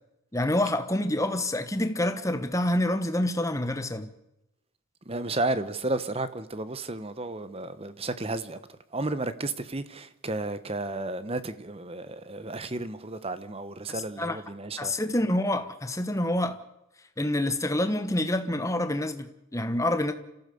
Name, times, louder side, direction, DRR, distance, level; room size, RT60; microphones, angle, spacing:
voice 1, 0.3-4.1 13.9-14.4 14.8-16.6 17.2-20.1, left 1 dB, 15° left, 1.2 m, -27 dB
voice 2, 5.1-8.6 8.9-14.9, right 2 dB, 25° right, 1.0 m, -32 dB
28.0 x 15.0 x 7.0 m
head